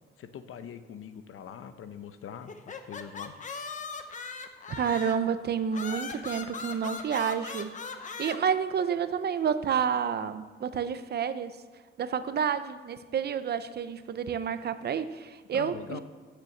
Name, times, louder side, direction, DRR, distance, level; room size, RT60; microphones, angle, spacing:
voice 1, 0.2-3.3 15.5-16.0, left 8 dB, 85° left, 10 dB, 0.8 m, -43 dB
sound 1, 2.5-5.3 5.7-8.4, left 5 dB, 35° left, 0.7 m, -39 dB
voice 2, 4.8-7.7 8.2-11.6 12.0-16.0, right 7 dB, 50° right, 11 dB, 0.6 m, -29 dB
8.9 x 6.9 x 7.9 m, 1.4 s
wide cardioid pair, 165°, 21 cm